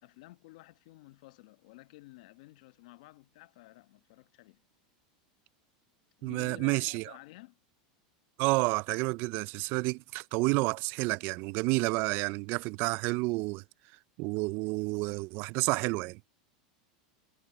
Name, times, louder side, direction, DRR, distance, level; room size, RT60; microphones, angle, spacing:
voice 1, 0.0-4.6 6.2-7.6, left 20 dB, 70° left, 1.1 m, -53 dB
voice 2, 6.2-7.1 8.4-13.6 14.2-16.2, right 25 dB, 55° right, 0.4 m, -30 dB
supercardioid pair, 115°, 4 cm